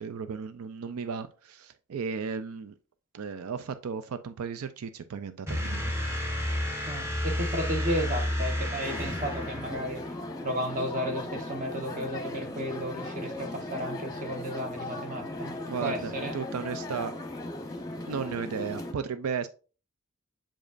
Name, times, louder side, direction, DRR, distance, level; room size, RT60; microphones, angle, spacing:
voice 1, 0.0-2.7 3.1-6.0 15.6-17.1 18.1-19.5, right 6 dB, 85° right, 0.4 m, -35 dB
sound 1, 5.5-10.2, left 1 dB, 10° right, 0.9 m, -31 dB
voice 2, 6.9-10.0 10.4-15.5 15.8-16.3, equal, 35° right, 1.1 m, -33 dB
sound 2, 8.8-18.9, left 2 dB, 15° left, 0.9 m, -38 dB
7.4 x 5.0 x 2.5 m
head